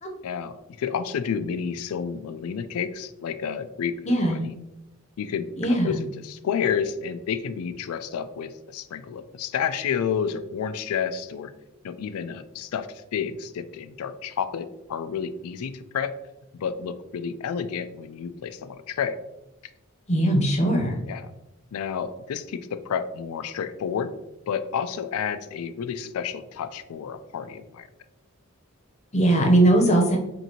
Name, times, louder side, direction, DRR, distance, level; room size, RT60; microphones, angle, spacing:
voice 1, 0.2-4.6 5.2-11.5 11.8-16.1 16.5-19.2 21.1-21.3 21.7-24.1 24.5-27.9, left 7 dB, 80° left, 12 dB, 0.3 m, -30 dB
voice 2, 4.0-4.4 5.6-6.0 20.1-21.0 29.1-30.2, right 1 dB, 30° left, 1 dB, 0.7 m, -20 dB
5.6 x 2.6 x 2.8 m, 0.92 s
head